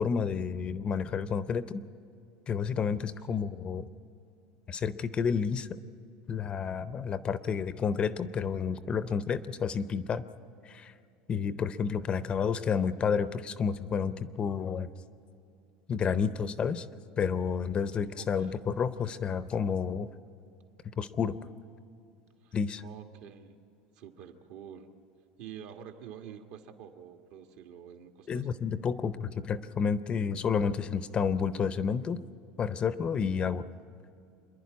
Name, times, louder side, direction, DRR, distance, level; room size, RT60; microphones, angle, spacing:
voice 1, 0.0-1.8 2.5-3.9 4.7-5.7 6.3-10.2 10.7-10.9 11.3-14.9 15.9-16.9 17.2-20.1 21.0-21.4 22.5-22.8 28.3-32.2 32.6-33.6, left 6 dB, 25° left, 14 dB, 0.6 m, -30 dB
voice 2, 18.2-18.6 22.4-23.6 23.9-24.9 25.4-28.5, right 9 dB, 70° right, 5 dB, 1.5 m, -48 dB
26.5 x 11.0 x 9.4 m, 2.6 s
supercardioid pair, 140°, 4 cm